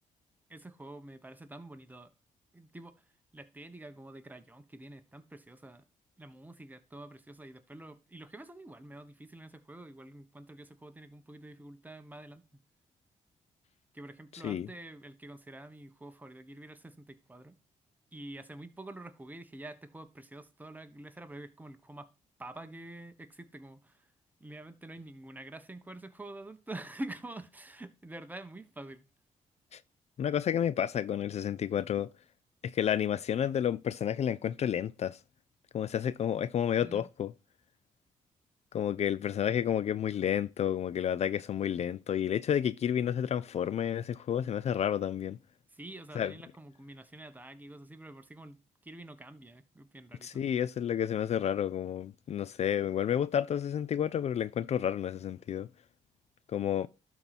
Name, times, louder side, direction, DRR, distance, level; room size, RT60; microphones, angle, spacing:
voice 1, 0.5-2.1 2.5-3.1 3.3-5.8 6.2-12.6 13.9-17.6 18.1-22.1 22.4-24.1 24.4-29.0 36.8-37.1 45.7-50.4, right 1 dB, 10° right, 1.2 m, -47 dB
voice 2, 30.2-32.1 32.6-35.2 35.7-37.3 38.7-45.4 46.2-46.3 50.2-55.7 56.5-56.9, left 9 dB, 55° left, 0.4 m, -30 dB
12.0 x 4.5 x 4.2 m
cardioid pair, 85°, 13 cm